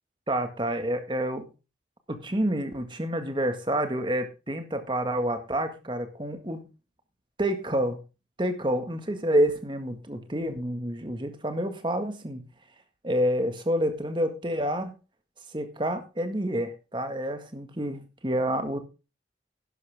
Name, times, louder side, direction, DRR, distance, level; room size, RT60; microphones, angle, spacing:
voice 1, 0.3-1.4 2.1-6.6 7.4-8.0 8.4-12.5 13.0-14.9 15.5-18.8, equal, 25° right, 7 dB, 1.8 m, -28 dB
11.5 x 11.0 x 3.6 m, 0.30 s
head